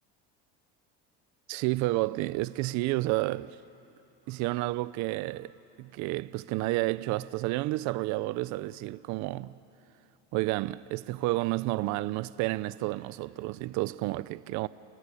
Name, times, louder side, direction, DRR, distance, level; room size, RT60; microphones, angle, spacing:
voice 1, 1.5-3.6 4.3-5.5 5.8-9.5 10.3-14.7, right 19 dB, 65° right, 0.6 m, -30 dB
30.0 x 19.0 x 10.0 m
cardioid pair, 120°, 32 cm